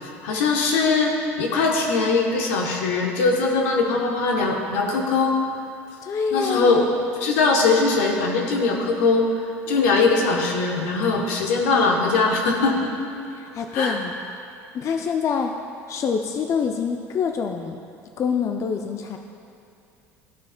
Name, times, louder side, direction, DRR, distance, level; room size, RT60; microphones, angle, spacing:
voice 1, 0.0-5.4 6.3-6.9 7.2-9.3 9.7-12.9 13.7-14.0, left 4 dB, 80° left, 1 dB, 1.0 m, -21 dB
voice 2, 6.0-6.8 9.7-10.0 13.4-14.1 14.7-15.5 15.9-17.8 18.2-19.2, left 6 dB, 40° left, 4 dB, 0.4 m, -26 dB
14.0 x 4.7 x 2.2 m, 2.7 s
hypercardioid pair, 80°, 7 cm